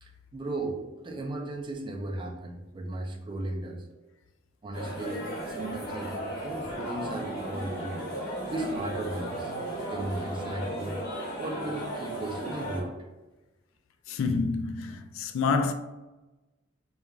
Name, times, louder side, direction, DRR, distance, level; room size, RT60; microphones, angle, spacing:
voice 1, 0.0-3.9 4.6-8.0 8.5-9.5 9.9-11.0 11.4-12.9, right 2 dB, 25° right, 0.4 m, -36 dB
sound 1, 4.7-12.8, right 1 dB, 45° left, 1.4 m, -35 dB
voice 2, 14.1-15.7, left 4 dB, 85° left, 0.3 m, -28 dB
2.9 x 2.3 x 2.3 m
head